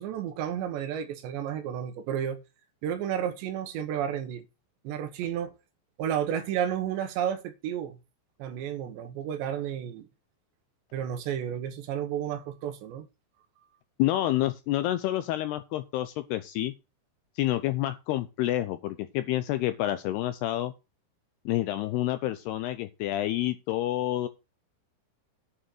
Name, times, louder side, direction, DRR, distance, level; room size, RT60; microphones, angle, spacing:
voice 1, 0.0-2.4 2.8-4.5 4.8-5.5 6.0-8.0 8.4-10.1 10.9-13.1, right 9 dB, 75° right, 3.4 m, -32 dB
voice 2, 14.0-16.7 17.4-20.7 21.5-24.3, left 14 dB, 80° left, 2.4 m, -28 dB
9.7 x 6.2 x 6.3 m
omnidirectional pair, 5.3 m